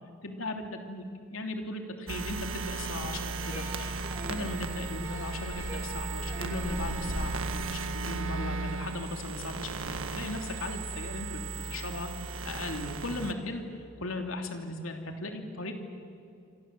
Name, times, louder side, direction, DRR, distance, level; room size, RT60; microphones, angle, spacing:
voice 1, 0.2-1.0 1.3-12.1 12.4-13.6 14.0-15.7, left 2 dB, 75° left, 4 dB, 3.1 m, -37 dB
sound 1, 2.1-13.3, right 3 dB, 70° right, 1.7 m, -35 dB
sound 2, 3.4-8.5, right 1 dB, 15° right, 4.1 m, -46 dB
27.5 x 25.5 x 7.7 m, 2.5 s
head